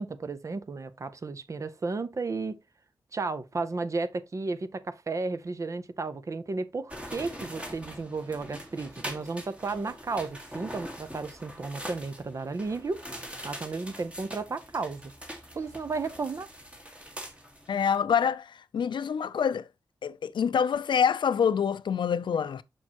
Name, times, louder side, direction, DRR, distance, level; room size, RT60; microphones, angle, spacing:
voice 1, 0.0-2.6 3.1-13.0 13.4-15.1 15.5-16.5, right 3 dB, 40° right, 0.6 m, -33 dB
sound 1, 6.9-18.0, equal, 15° right, 1.7 m, -43 dB
voice 2, 17.7-19.6 20.0-22.6, left 7 dB, 80° left, 0.4 m, -26 dB
6.3 x 6.2 x 2.9 m
wide cardioid pair, 130°, 8 cm